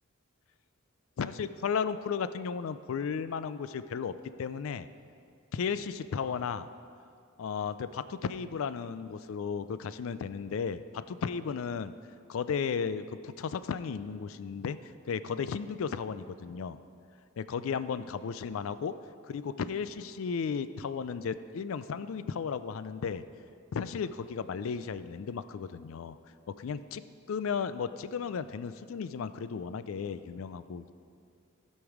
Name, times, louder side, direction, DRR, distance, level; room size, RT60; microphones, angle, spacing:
voice 1, 1.2-4.9 5.5-6.7 7.4-11.9 12.3-14.8 15.1-16.8 17.4-19.0 19.3-23.2 23.7-26.2 26.5-27.0 27.3-30.9, left 6 dB, 65° left, 13 dB, 0.4 m, -34 dB
15.0 x 5.4 x 4.8 m, 2.4 s
head